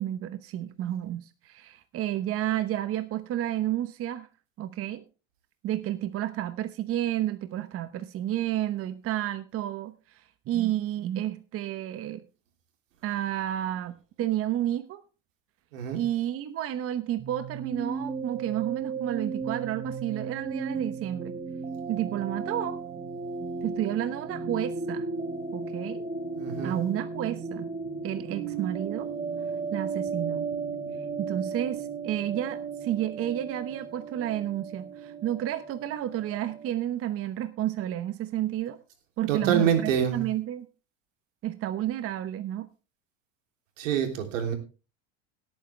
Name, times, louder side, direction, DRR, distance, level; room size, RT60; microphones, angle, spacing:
voice 1, 0.0-4.3 4.6-5.0 5.6-12.2 13.0-15.0 15.9-21.3 21.9-22.8 23.6-25.1 25.5-26.0 26.6-27.7 28.0-29.1 29.7-30.4 31.2-38.8 39.2-40.7 41.4-42.7, right 12 dB, 35° right, 11 dB, 1.0 m, -31 dB
sound 1, 17.2-36.7, right 4 dB, 15° right, 1.6 m, -35 dB
voice 2, 26.4-26.8 39.3-40.3 43.8-44.5, right 8 dB, 80° right, 5 dB, 3.3 m, -26 dB
17.5 x 8.9 x 3.3 m, 0.32 s
supercardioid pair, 120°, 38 cm